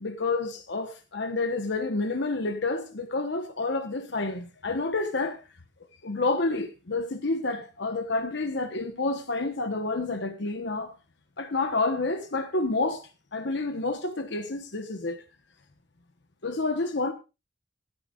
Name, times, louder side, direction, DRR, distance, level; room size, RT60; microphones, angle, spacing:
voice 1, 0.0-5.4 6.0-10.9 11.4-15.2 16.4-17.1, left 3 dB, 65° left, 1.1 m, -29 dB
15.5 x 14.0 x 2.4 m
head